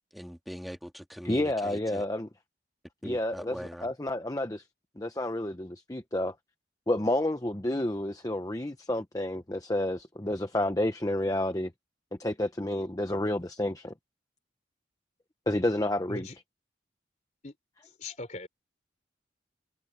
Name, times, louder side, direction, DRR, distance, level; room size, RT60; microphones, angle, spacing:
voice 1, 0.1-2.1 3.0-3.9, equal, ahead, 2.3 m, -41 dB
voice 2, 1.2-2.3 3.0-4.6 5.0-6.3 6.9-11.7 12.2-13.9 15.5-16.3, left 1 dB, 20° left, 0.9 m, -30 dB
voice 3, 17.8-18.5, left 2 dB, 40° left, 3.7 m, -40 dB
head